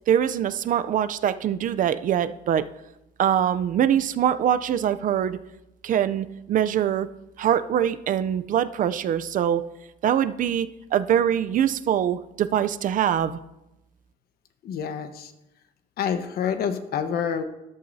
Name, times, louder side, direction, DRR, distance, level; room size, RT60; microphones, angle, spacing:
voice 1, 0.1-2.7 3.2-5.4 5.8-7.1 7.4-9.7 10.0-13.4, right 9 dB, 50° right, 13 dB, 0.6 m, -23 dB
voice 2, 14.6-15.3 16.0-17.4, left 7 dB, 65° left, 8 dB, 1.2 m, -27 dB
13.5 x 11.5 x 2.8 m, 0.95 s
cardioid pair, 110°, 17 cm